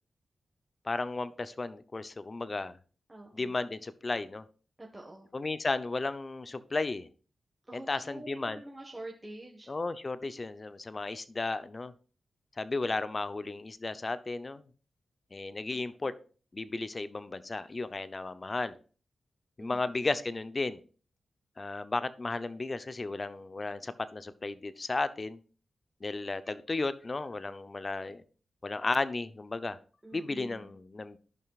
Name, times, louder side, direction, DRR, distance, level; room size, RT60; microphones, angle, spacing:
voice 1, 0.8-2.8 3.3-4.4 5.3-7.1 7.7-8.6 9.7-11.9 12.6-14.7 15.3-16.1 16.5-18.8 19.6-20.8 21.6-25.4 26.0-28.2 28.6-29.8 30.1-31.2, left 3 dB, 40° left, 14 dB, 0.7 m, -34 dB
voice 2, 3.1-3.6 4.8-5.3 7.7-9.7 19.6-20.2 30.0-30.8, right 1 dB, 20° right, -1 dB, 1.5 m, -47 dB
14.5 x 5.7 x 2.4 m, 0.38 s
supercardioid pair, 45°, 0 cm